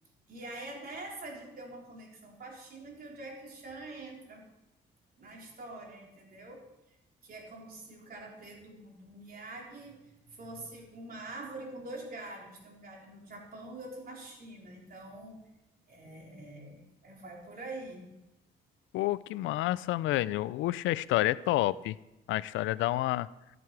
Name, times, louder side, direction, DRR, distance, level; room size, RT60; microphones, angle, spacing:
voice 1, 0.3-4.4 5.2-6.7 7.2-15.4 15.9-18.1, right 2 dB, 50° right, -2 dB, 3.9 m, -45 dB
voice 2, 18.9-22.0 22.3-23.3, left 16 dB, 85° left, 19 dB, 0.4 m, -29 dB
13.5 x 7.6 x 4.7 m, 0.95 s
supercardioid pair, 70°, 20 cm